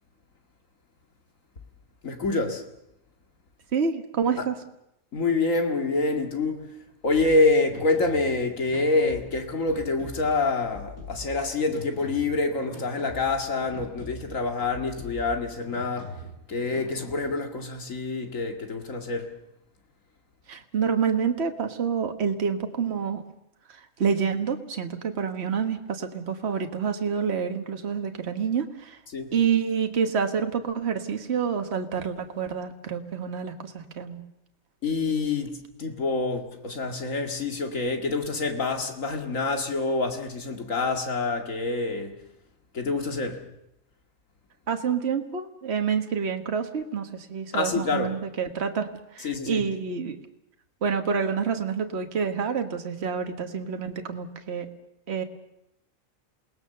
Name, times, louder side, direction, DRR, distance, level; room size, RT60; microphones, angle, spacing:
voice 1, 2.0-2.6 5.1-6.7 7.0-16.2 16.5-19.3 29.1-29.3 34.8-42.2 42.7-43.4 47.5-48.1 49.2-49.6, left 3 dB, 70° left, 2.6 m, -26 dB
voice 2, 3.7-4.6 20.5-23.2 23.7-29.0 29.3-34.2 44.7-50.2 50.8-54.7 55.1-55.2, right 6 dB, 50° right, 1.6 m, -28 dB
sound 1, 7.0-17.1, left 1 dB, 85° left, 7.9 m, -43 dB
28.0 x 19.0 x 6.8 m
omnidirectional pair, 1.4 m